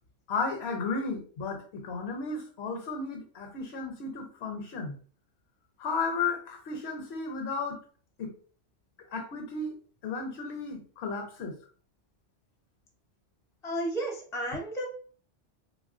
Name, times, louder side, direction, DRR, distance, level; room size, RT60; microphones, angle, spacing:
voice 1, 0.3-4.9 5.8-7.8 8.2-8.3 9.1-9.8 10.0-11.5, left 4 dB, 65° left, 4 dB, 0.8 m, -34 dB
voice 2, 13.6-14.8, right 1 dB, 5° left, -1 dB, 0.5 m, -32 dB
3.2 x 2.3 x 2.5 m, 0.42 s
omnidirectional pair, 1.2 m